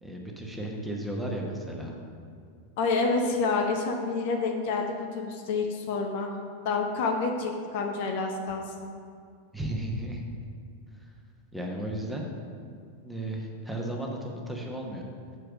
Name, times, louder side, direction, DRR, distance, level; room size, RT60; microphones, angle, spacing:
voice 1, 0.0-1.9 9.5-10.2 11.5-12.3 13.0-15.0, right 1 dB, 5° right, -1 dB, 1.1 m, -34 dB
voice 2, 2.8-6.3 6.6-8.9, left 4 dB, 50° left, 3 dB, 0.7 m, -28 dB
6.7 x 4.6 x 6.1 m, 2.3 s
figure-of-eight pair, 90°, 0 cm